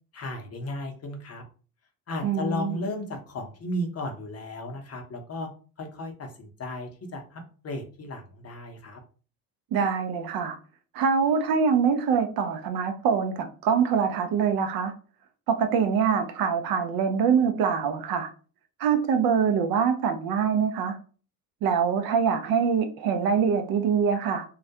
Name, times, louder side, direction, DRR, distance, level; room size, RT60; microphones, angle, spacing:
voice 1, 0.1-1.4 2.1-5.5 5.8-9.0, left 1 dB, 30° left, 4 dB, 0.7 m, -35 dB
voice 2, 2.2-2.8 9.7-10.6 10.9-14.9 15.5-18.3 18.8-21.0 21.6-24.4, right 6 dB, 50° right, 7 dB, 0.5 m, -24 dB
2.3 x 2.1 x 2.7 m, 0.38 s
hypercardioid pair, 70°, 47 cm